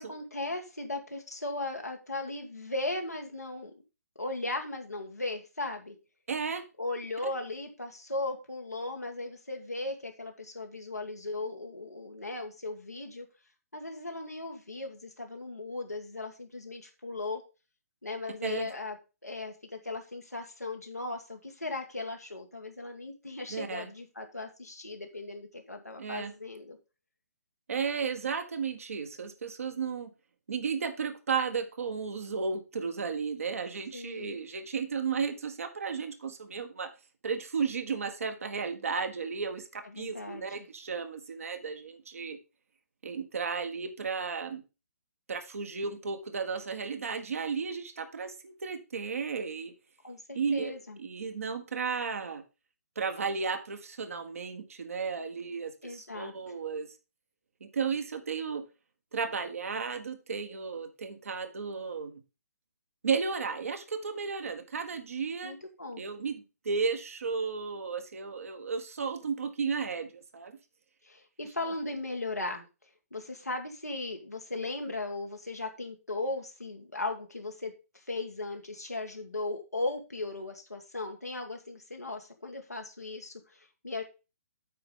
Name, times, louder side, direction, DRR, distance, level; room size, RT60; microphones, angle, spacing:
voice 1, 0.0-3.7 4.2-5.9 6.8-13.3 13.7-17.4 18.0-18.9 19.2-26.8 33.9-34.4 39.9-40.4 50.0-51.0 55.8-56.3 65.4-66.0 71.0-72.7 73.1-84.0, left 2 dB, 90° left, 2 dB, 1.6 m, -37 dB
voice 2, 6.3-6.6 18.4-18.7 23.5-23.9 26.0-26.3 27.7-30.1 30.5-36.9 37.2-42.4 43.0-44.6 45.3-49.7 50.3-50.7 51.0-52.4 52.9-56.9 57.6-58.6 59.1-62.2 63.0-65.5 66.0-66.3 66.6-70.6, right 5 dB, 60° right, 6 dB, 1.5 m, -34 dB
8.5 x 5.0 x 5.3 m, 0.30 s
figure-of-eight pair, 130°, 8 cm